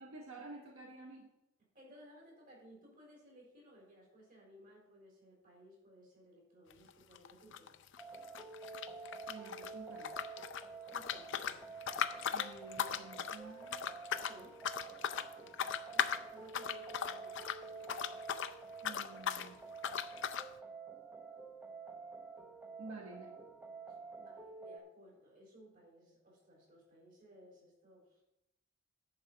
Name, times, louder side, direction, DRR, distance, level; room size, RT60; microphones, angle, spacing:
voice 1, 0.0-1.3 9.3-10.2 12.3-13.8 18.8-19.6 22.8-23.3, right 2 dB, 85° right, 0 dB, 1.4 m, -50 dB
voice 2, 1.7-7.8 10.9-12.1 14.2-14.6 14.9-18.0 23.9-28.2, equal, 40° right, -2 dB, 4.1 m, -60 dB
sound 1, 6.7-6.9 7.1-9.7 10.0-18.5 18.8-19.5 19.8-20.5, left 8 dB, 60° left, 0.5 m, -38 dB
sound 2, 8.0-24.8, right 4 dB, 10° right, 0.8 m, -49 dB
10.5 x 4.9 x 7.2 m, 0.88 s
head